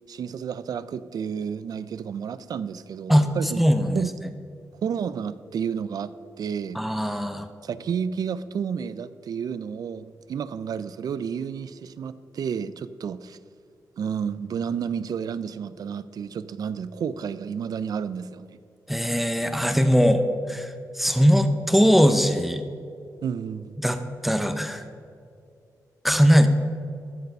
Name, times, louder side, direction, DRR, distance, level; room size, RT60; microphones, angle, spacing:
voice 1, 0.1-3.6 3.9-4.1 4.8-6.1 6.4-6.8 7.6-13.4 14.0-18.6 23.2-23.8, right 7 dB, 70° right, 15 dB, 0.4 m, -31 dB
voice 2, 3.1-4.0 6.7-7.5 18.9-22.6 23.8-24.8 26.0-26.5, equal, ahead, 8 dB, 0.7 m, -20 dB
12.5 x 6.8 x 5.3 m, 2.4 s
cardioid pair, 85°, 7 cm